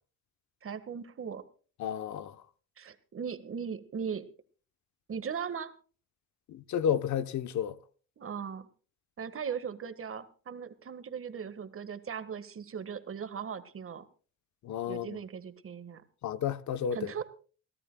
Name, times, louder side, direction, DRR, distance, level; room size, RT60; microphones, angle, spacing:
voice 1, 0.6-1.5 2.8-4.3 5.1-5.7 8.2-8.7 9.2-14.1 14.8-16.0 16.9-17.2, right 7 dB, 45° right, 1.6 m, -38 dB
voice 2, 1.8-2.4 6.5-7.8 14.6-15.2 16.2-17.0, left 8 dB, 70° left, 1.0 m, -31 dB
29.0 x 12.5 x 2.3 m
cardioid pair, 90°, 30 cm